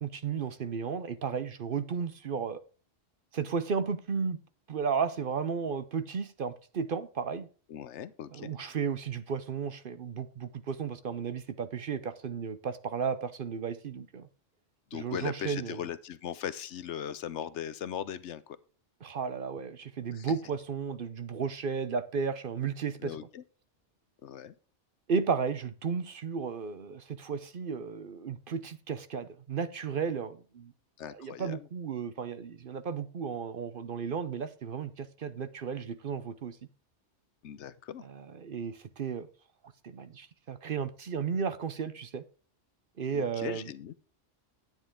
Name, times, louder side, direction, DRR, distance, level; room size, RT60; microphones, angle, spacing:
voice 1, 0.0-2.6 3.3-4.4 4.7-7.5 8.3-14.3 14.9-15.8 19.0-23.1 25.1-30.7 31.0-36.6 38.0-39.3 39.8-42.2 43.0-43.7, right 6 dB, 55° right, 0.8 m, -34 dB
voice 2, 7.7-8.5 14.9-18.6 20.1-20.3 23.0-23.4 24.2-24.5 31.0-31.7 37.4-38.0 43.1-43.9, left 9 dB, 75° left, 1.0 m, -39 dB
10.0 x 9.0 x 3.7 m
omnidirectional pair, 1.2 m